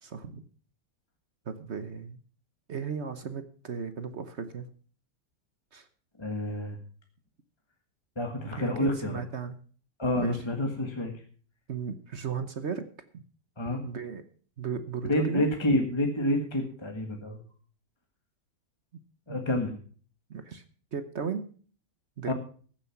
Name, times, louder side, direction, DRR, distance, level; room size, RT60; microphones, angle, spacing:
voice 1, 0.0-0.4 1.5-2.2 2.7-4.7 5.7-5.9 8.6-9.6 10.2-10.4 11.7-12.9 13.1-13.2 13.8-14.2 14.6-15.5 18.9-19.0 19.3-19.4 20.3-20.6 20.9-21.5 22.2-22.3, right 6 dB, 45° right, 11 dB, 1.1 m, -35 dB
voice 2, 6.2-6.8 8.1-9.2 10.0-11.1 13.6-13.8 15.1-17.4 19.3-19.7 22.2-22.3, left 1 dB, 15° left, 3 dB, 1.5 m, -28 dB
14.5 x 7.5 x 5.9 m, 0.43 s
omnidirectional pair, 1.8 m